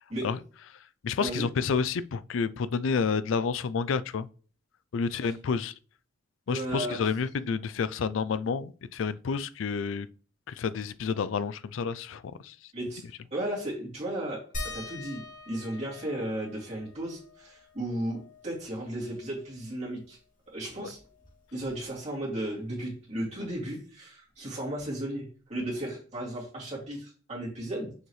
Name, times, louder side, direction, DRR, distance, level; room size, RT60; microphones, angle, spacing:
voice 1, 1.0-4.3 4.9-5.7 6.5-10.1 10.5-12.6 20.8-20.9, left 5 dB, 75° left, 0.4 m, -29 dB
voice 2, 6.5-7.0 12.7-13.0 13.3-14.4 14.7-20.2 20.5-21.0 21.5-27.9, right 1 dB, 35° right, 2.6 m, -35 dB
sound 1, 14.5-19.7 20.0-20.1 20.5-22.2 23.5-23.6 24.3-24.4, left 2 dB, 45° left, 2.6 m, -44 dB
6.5 x 4.6 x 3.1 m
head